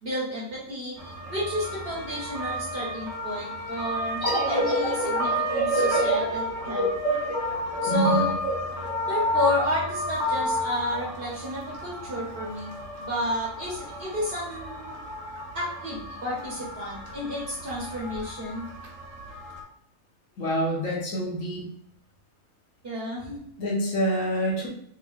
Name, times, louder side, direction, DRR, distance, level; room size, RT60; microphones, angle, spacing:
voice 1, 0.0-0.9 1.3-6.8 7.8-8.3 9.1-12.7 13.0-15.0 15.5-18.6 22.8-23.4, left 1 dB, 45° right, -5 dB, 0.9 m, -31 dB
sound 1, 1.0-19.6, left 1 dB, 60° right, 1.2 m, -32 dB
sound 2, 4.2-9.5, right 1 dB, 25° left, 0.8 m, -27 dB
voice 2, 7.9-8.3 20.4-21.6 23.6-24.7, right 1 dB, 60° left, -3 dB, 1.2 m, -26 dB
3.5 x 3.2 x 2.4 m, 0.70 s
omnidirectional pair, 1.6 m